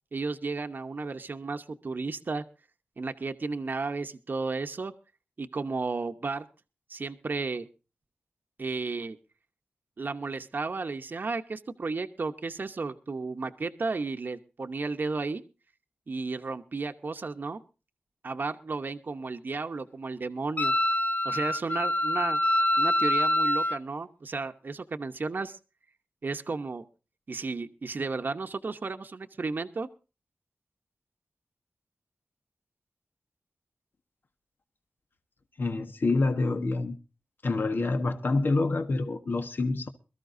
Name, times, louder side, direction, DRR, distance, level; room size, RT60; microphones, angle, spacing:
voice 1, 0.1-2.4 3.0-4.9 5.4-6.5 6.9-7.7 8.6-9.2 10.0-15.4 16.1-17.6 18.2-20.7 21.2-22.4 22.8-25.6 26.2-26.8 27.3-29.9, right 3 dB, 55° right, 1.0 m, -33 dB
Wind instrument woodwind instrument, 20.6-23.8, left 1 dB, 45° left, 0.7 m, -25 dB
voice 2, 35.6-37.0 37.4-39.9, left 3 dB, 65° left, 1.4 m, -27 dB
22.0 x 13.5 x 2.6 m
cardioid pair, 50°, 4 cm